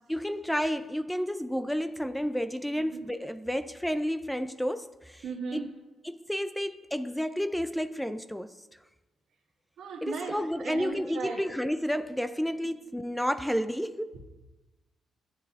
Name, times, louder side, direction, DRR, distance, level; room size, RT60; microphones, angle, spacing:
voice 1, 0.1-5.2 5.5-5.7 6.0-8.5 10.0-14.1, equal, 5° left, 0.3 m, -31 dB
voice 2, 5.2-5.7 9.8-11.4 14.1-14.2, right 5 dB, 70° right, 1.7 m, -37 dB
11.5 x 9.6 x 2.4 m
cardioid pair, 90°, 0 cm